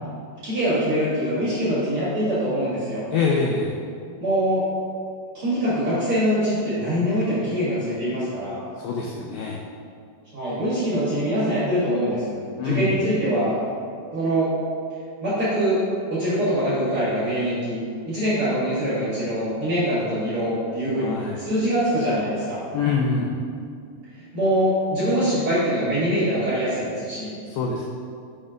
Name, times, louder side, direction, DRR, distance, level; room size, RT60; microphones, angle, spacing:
voice 1, 0.4-3.0 4.2-4.6 5.3-8.6 10.3-13.6 14.1-14.5 15.2-15.8 16.1-21.1 21.4-22.6 24.3-27.3, equal, 50° right, -11 dB, 1.8 m, -23 dB
voice 2, 3.1-3.8 8.8-9.6 12.6-13.0 21.0-21.5 22.7-23.3 27.5-27.9, left 4 dB, 85° left, -1 dB, 2.1 m, -25 dB
5.9 x 4.3 x 5.0 m, 2.3 s
omnidirectional pair, 4.7 m